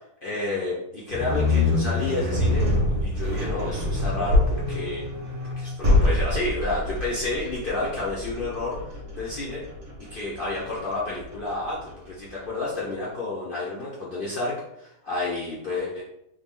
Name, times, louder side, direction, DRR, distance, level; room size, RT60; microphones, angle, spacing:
voice 1, 0.2-2.7 3.0-5.0 5.4-9.6 10.1-11.8 12.1-16.0, left 2 dB, 70° left, -6 dB, 0.5 m, -30 dB
sound 1, 1.1-12.2, left 2 dB, 40° right, 0.9 m, -25 dB
3.5 x 2.1 x 3.6 m, 0.80 s
omnidirectional pair, 1.8 m